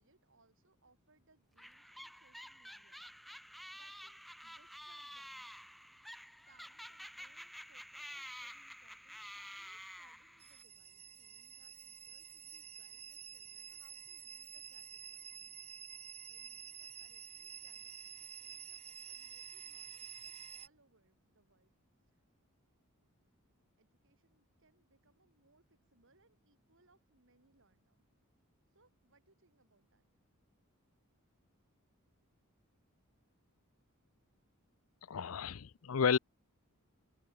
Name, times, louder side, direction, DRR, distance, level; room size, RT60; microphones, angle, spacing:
voice 1, 0.0-5.5 6.5-15.8 16.3-21.7 22.0-22.2 23.8-28.0 28.7-30.0, right 3 dB, 60° right, 7.0 m, -72 dB
sound 1, 1.6-10.6, equal, ahead, 0.8 m, -50 dB
sound 2, 10.4-20.7, right 8 dB, 30° right, 4.0 m, -50 dB
voice 2, 35.1-36.2, left 6 dB, 70° left, 0.5 m, -32 dB
open air
head